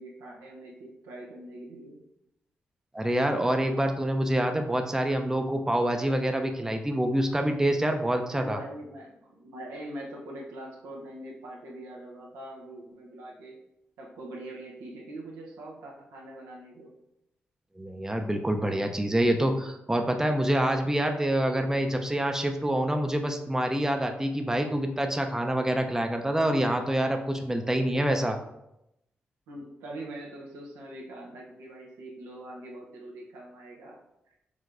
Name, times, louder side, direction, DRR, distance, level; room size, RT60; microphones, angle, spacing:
voice 1, 0.0-2.0 8.2-13.6 14.0-16.9 29.5-34.0, right 1 dB, 90° right, -2 dB, 0.8 m, -43 dB
voice 2, 2.9-8.6 17.8-28.4, right 1 dB, 10° right, 5 dB, 0.6 m, -26 dB
4.9 x 3.2 x 2.5 m, 0.86 s
supercardioid pair, 45°, 5 cm